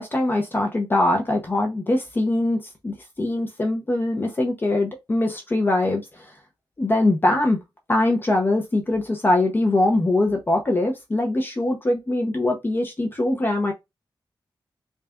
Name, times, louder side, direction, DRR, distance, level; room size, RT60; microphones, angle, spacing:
voice 1, 0.0-6.3 6.8-7.6 7.9-13.7, left 2 dB, 25° left, 0.7 m, -22 dB
4.0 x 3.4 x 2.3 m
wide cardioid pair, 165°, 9 cm